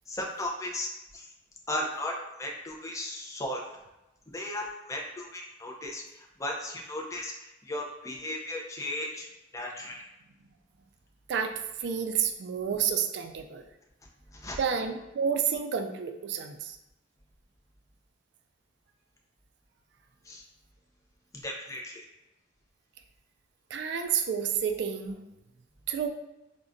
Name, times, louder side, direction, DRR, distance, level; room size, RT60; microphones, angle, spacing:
voice 1, 0.1-1.3 1.7-3.6 4.3-10.1 14.3-14.6 20.3-20.4 21.4-22.0, left 1 dB, 15° left, 0 dB, 0.4 m, -36 dB
voice 2, 11.3-13.7 14.6-16.8 23.7-25.2 25.9-26.1, right 7 dB, 60° right, 6 dB, 0.3 m, -30 dB
3.8 x 2.2 x 2.5 m, 0.96 s
head